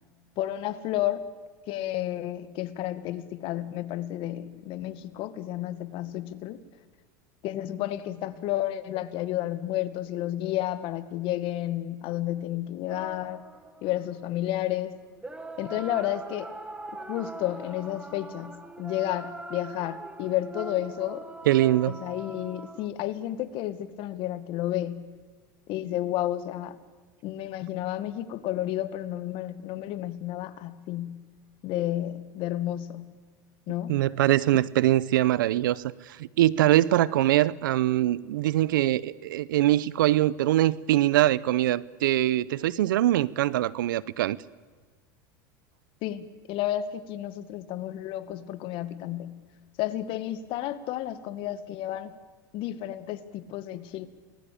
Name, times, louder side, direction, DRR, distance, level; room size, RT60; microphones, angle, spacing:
voice 1, 0.4-1.3 1.7-6.6 7.4-13.4 13.8-15.0 15.6-16.5 16.9-21.3 21.9-25.1 25.7-26.8 27.2-31.2 31.6-33.1 33.7-34.1 46.0-49.4 49.8-52.1 52.5-54.1, left 13 dB, 55° left, 12 dB, 1.9 m, -31 dB
sound 1, 12.9-14.3 15.2-22.9, right 2 dB, 10° right, 2.0 m, -42 dB
voice 2, 21.5-21.9 33.9-44.4, right 14 dB, 85° right, 21 dB, 0.8 m, -23 dB
29.5 x 20.0 x 8.6 m, 1.4 s
supercardioid pair, 105°, 11 cm